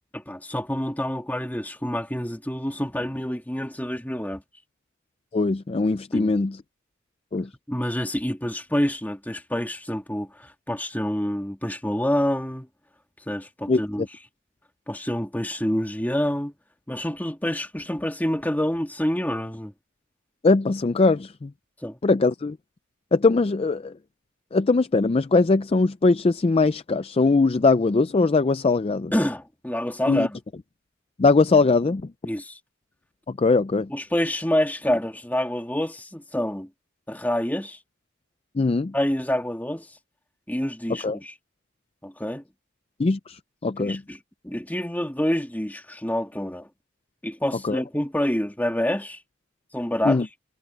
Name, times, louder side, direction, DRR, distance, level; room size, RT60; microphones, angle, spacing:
voice 1, 0.1-4.4 6.1-6.3 7.7-12.7 13.3-14.1 14.9-16.5 16.9-19.7 21.8-22.0 29.1-30.4 32.3-32.6 33.9-36.7 37.1-37.8 38.9-39.9 40.5-41.3 42.0-42.4 43.8-44.2 44.4-46.7 47.2-49.2 49.7-50.2, left 1 dB, 10° left, 1.9 m, -27 dB
voice 2, 5.3-6.6 7.3-7.5 13.7-13.8 20.4-21.5 22.0-22.6 23.1-23.9 24.5-29.1 30.1-30.3 31.2-32.0 33.3-33.9 38.6-38.9 41.0-41.2 43.0-44.0 47.6-47.8 50.0-50.3, left 3 dB, 30° left, 0.4 m, -21 dB
head